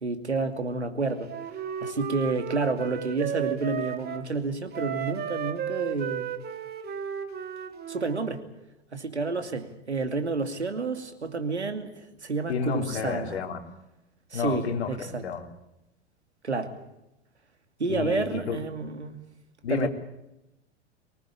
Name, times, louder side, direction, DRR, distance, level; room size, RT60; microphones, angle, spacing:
voice 1, 0.0-1.3 1.8-6.3 7.9-8.4 8.9-13.3 14.3-15.2 16.4-16.7 17.8-19.2 19.7-19.9, right 3 dB, 90° right, 7 dB, 2.6 m, -30 dB
Wind instrument woodwind instrument, 1.3-4.3 4.7-8.2, right 9 dB, 30° right, 2.7 m, -34 dB
voice 2, 12.5-13.6 14.3-15.5 17.9-18.6 19.6-19.9, left 6 dB, 70° left, 6 dB, 3.3 m, -30 dB
24.0 x 19.5 x 8.6 m, 0.91 s
figure-of-eight pair, 90°, 33 cm